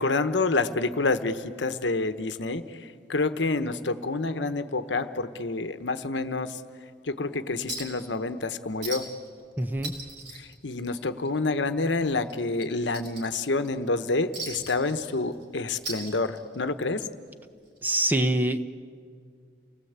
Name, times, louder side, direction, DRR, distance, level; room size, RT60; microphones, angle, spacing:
voice 1, 0.0-2.6 3.1-6.6 7.1-9.1 10.3-17.1, left 3 dB, 85° left, 10 dB, 1.1 m, -28 dB
Chink clink, 7.7-8.1 8.4-8.5 8.8-9.3 9.6-11.3 11.6-11.8 12.2-13.7 14.3-15.4 15.7-16.7 17.8-17.9, right 3 dB, 80° right, 5.0 m, -38 dB
voice 2, 9.6-9.9 17.8-18.6, right 1 dB, 10° right, 9 dB, 0.8 m, -24 dB
29.0 x 19.5 x 8.1 m, 2.1 s
head